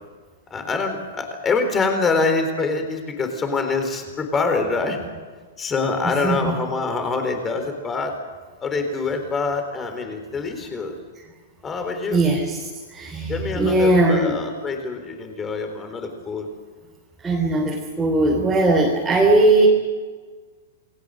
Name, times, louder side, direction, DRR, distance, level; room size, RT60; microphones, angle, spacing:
voice 1, 0.5-5.0 5.6-8.1 8.6-11.0 11.6-12.2 13.3-16.5, left 4 dB, 15° left, 6 dB, 3.9 m, -25 dB
voice 2, 12.1-12.6 12.9-14.4 17.2-19.7, right 2 dB, 10° right, -2 dB, 3.4 m, -19 dB
28.5 x 21.0 x 6.5 m, 1.5 s
hypercardioid pair, 165°, 0 cm